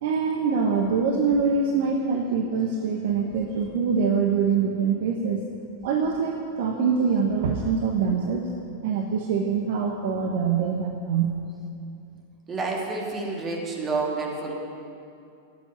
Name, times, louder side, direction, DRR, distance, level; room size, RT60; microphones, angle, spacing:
voice 1, 0.0-5.4 5.8-8.5 8.8-11.3, right 5 dB, 55° right, 1 dB, 1.3 m, -24 dB
voice 2, 12.5-14.5, right 3 dB, 25° right, -1 dB, 3.1 m, -29 dB
15.0 x 8.4 x 9.6 m, 2.5 s
figure-of-eight pair, 90°, 0 cm